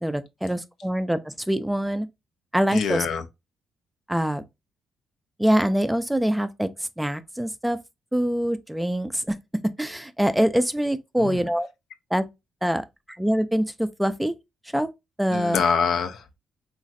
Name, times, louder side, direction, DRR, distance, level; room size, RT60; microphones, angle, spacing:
voice 1, 0.0-2.1 2.5-3.1 4.1-4.4 5.4-7.8 8.1-9.4 9.8-11.7 12.1-12.3 12.6-14.3 14.7-14.9 15.2-15.6, equal, 5° right, 0.3 m, -24 dB
voice 2, 2.7-3.2 11.2-11.4 15.3-16.3, left 6 dB, 75° left, 0.5 m, -25 dB
3.0 x 2.4 x 2.6 m
cardioid pair, 75°, 0 cm